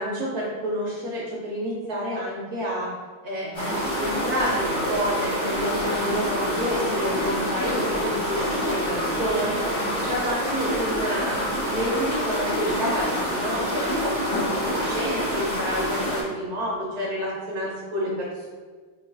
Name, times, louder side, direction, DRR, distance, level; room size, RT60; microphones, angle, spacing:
voice 1, 0.0-2.9 3.2-11.4 11.7-18.5, equal, 60° right, -5 dB, 1.0 m, -29 dB
sound 1, 3.5-16.2, equal, 20° left, 0.9 m, -27 dB
5.4 x 3.0 x 2.6 m, 1.5 s
omnidirectional pair, 2.4 m